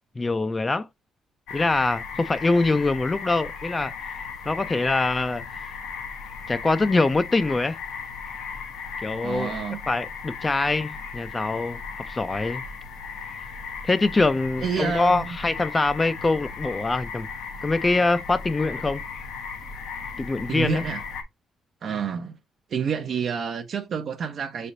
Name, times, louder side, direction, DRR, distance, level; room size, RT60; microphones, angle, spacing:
voice 1, 0.2-0.9 1.5-3.9 4.5-5.4 6.5-7.8 9.0-9.5 9.9-11.8 12.1-12.6 13.8-17.3 17.6-19.0 20.2-20.8, left 3 dB, 25° left, 0.4 m, -24 dB
sound 1, 1.5-21.2, left 5 dB, 90° left, 0.8 m, -36 dB
voice 2, 9.2-9.8 14.6-15.4 20.5-21.0 21.8-22.3 22.7-24.7, right 7 dB, 60° right, 0.6 m, -28 dB
5.6 x 3.3 x 2.6 m
cardioid pair, 90°, 0 cm